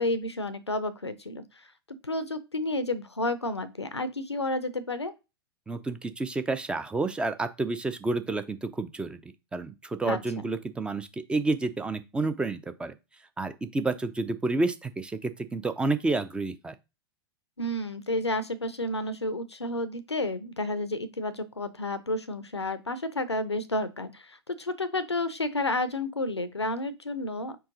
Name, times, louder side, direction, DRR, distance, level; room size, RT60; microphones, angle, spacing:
voice 1, 0.0-1.7 2.0-5.1 10.1-10.5 17.6-27.6, left 2 dB, 90° left, 13 dB, 0.5 m, -31 dB
voice 2, 5.7-12.9 13.4-16.8, right 3 dB, 5° right, 11 dB, 0.4 m, -30 dB
4.7 x 2.9 x 3.8 m, 0.26 s
figure-of-eight pair, 100°, 14 cm